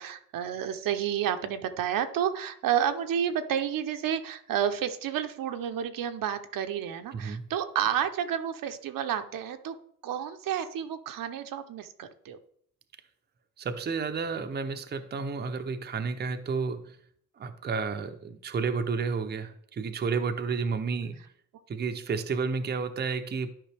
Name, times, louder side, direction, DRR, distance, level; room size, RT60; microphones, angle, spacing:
voice 1, 0.0-9.7 10.0-12.4, right 9 dB, 75° right, 8 dB, 0.8 m, -30 dB
voice 2, 7.1-7.4 13.6-17.0 17.4-21.2 21.7-23.5, right 5 dB, 30° right, 7 dB, 0.6 m, -31 dB
12.0 x 5.3 x 3.4 m, 0.64 s
cardioid pair, 120°, 34 cm